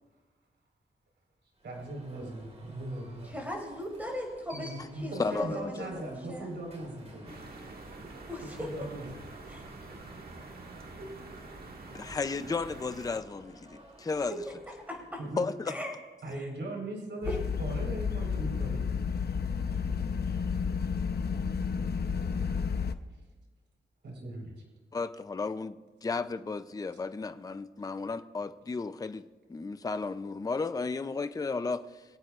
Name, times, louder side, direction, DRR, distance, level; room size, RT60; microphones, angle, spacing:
Alarm, 1.6-15.5, right 1 dB, 35° right, 4.1 m, -54 dB
voice 1, 1.6-3.4 4.5-7.3 8.6-9.2 15.2-15.4 16.2-17.3 17.6-18.9 19.7-20.1 24.0-24.5, right 2 dB, 70° right, 0 dB, 4.3 m, -39 dB
voice 2, 3.2-4.7 4.9-6.5 8.3-8.7 9.5-9.6 11.0-11.1 14.9-15.2 15.7-15.9 16.3-16.5 17.2-17.4, equal, 10° right, 0 dB, 5.5 m, -39 dB
voice 3, 5.2-5.9 11.9-14.3 15.4-15.7 24.9-29.2 29.5-32.0, left 4 dB, 20° left, 11 dB, 0.5 m, -34 dB
sound 1, 7.3-13.2, right 3 dB, 55° right, 1.8 m, -46 dB
sound 2, 17.2-22.9, left 6 dB, 60° left, 0.8 m, -31 dB
25.5 x 17.5 x 2.5 m, 1.3 s
wide cardioid pair, 145°, 19 cm